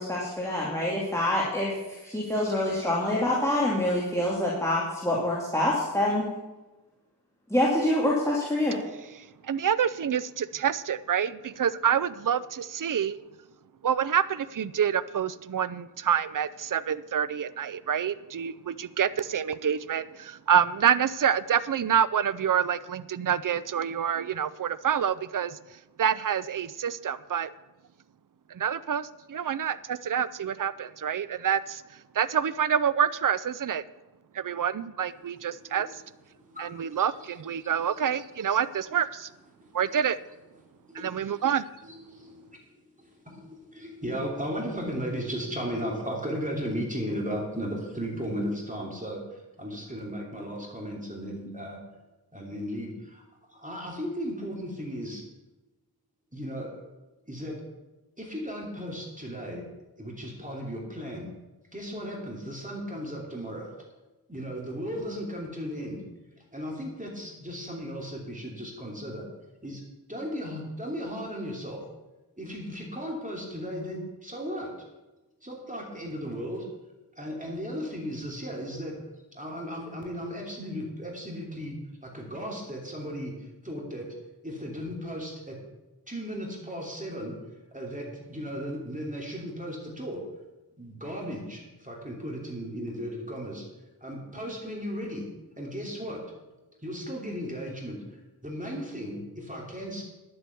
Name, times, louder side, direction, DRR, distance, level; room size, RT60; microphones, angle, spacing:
voice 1, 0.0-1.7 2.0-6.3 7.5-8.7, left 1 dB, 5° left, -5 dB, 2.5 m, -26 dB
voice 2, 9.5-13.2 13.8-25.6 26.0-27.5 28.5-31.8 32.1-33.8 34.3-35.9 36.6-39.3 39.7-40.2 40.9-41.6, right 8 dB, 55° right, 15 dB, 0.5 m, -27 dB
voice 3, 36.5-37.0 37.6-38.2 39.6-39.7 40.9-41.4 41.8-42.7 43.0-51.8 52.3-53.2 53.5-55.2 56.3-56.8 57.3-57.5 58.2-59.6 60.0-61.3 61.7-63.7 64.3-66.0 66.5-69.3 69.6-69.8 70.1-71.8 72.4-74.7 75.4-76.7 77.2-78.9 79.3-81.7 82.0-83.3 83.6-84.0 84.4-85.6 86.1-87.3 87.7-90.2 90.8-93.6 94.0-95.3 95.6-96.2 96.8-100.0, equal, 20° right, -1 dB, 2.9 m, -36 dB
10.5 x 7.8 x 7.0 m, 1.1 s
wide cardioid pair, 50°, 39 cm